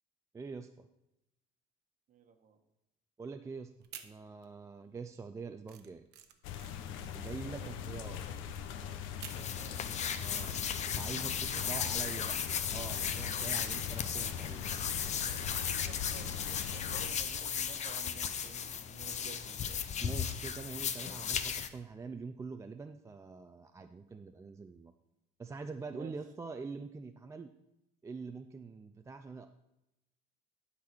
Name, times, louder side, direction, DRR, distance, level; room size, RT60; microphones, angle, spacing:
voice 1, 0.3-0.9 3.2-3.7 4.0-6.0 7.1-8.2 10.2-10.6 11.0-12.4 12.7-14.7 20.0-24.9 25.4-27.5 28.0-29.5, right 4 dB, 15° right, 6 dB, 0.4 m, -44 dB
voice 2, 2.1-2.6 4.8-5.0 7.4-8.2 9.3-9.8 11.3-12.0 13.3-13.5 15.8-19.8 25.9-26.1, right 7 dB, 40° right, 5 dB, 1.3 m, -54 dB
sound 1, 3.7-4.7 5.0-9.6, right 10 dB, 55° right, 1.0 m, -52 dB
sound 2, 6.4-17.1, left 8 dB, 70° left, 0.8 m, -41 dB
sound 3, 9.3-21.7, left 7 dB, 35° left, 0.6 m, -36 dB
11.0 x 4.1 x 6.0 m, 0.90 s
cardioid pair, 130°, 21 cm